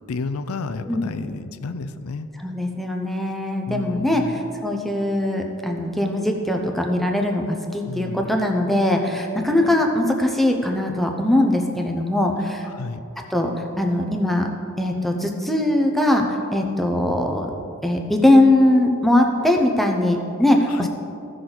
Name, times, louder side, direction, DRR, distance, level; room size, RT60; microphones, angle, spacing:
voice 1, 0.1-2.3 3.7-4.4 7.9-8.3 12.7-13.0 20.7-20.9, left 3 dB, 80° left, 10 dB, 0.5 m, -31 dB
voice 2, 2.4-12.7 13.3-13.5 13.8-14.5 14.8-17.5 17.8-20.9, left 1 dB, ahead, 2 dB, 0.7 m, -21 dB
15.5 x 6.2 x 3.9 m, 2.7 s
head